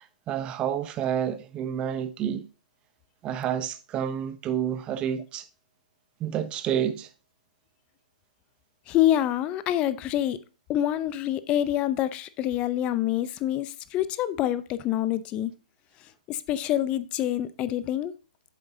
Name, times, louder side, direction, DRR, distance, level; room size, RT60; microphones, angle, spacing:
voice 1, 0.0-2.4 3.2-5.4 6.2-7.1, right 9 dB, 20° right, 0.7 m, -29 dB
voice 2, 8.9-10.4 10.7-15.5 16.3-18.1, left 12 dB, 25° left, 0.5 m, -26 dB
7.9 x 7.5 x 2.7 m
hypercardioid pair, 140°, 5 cm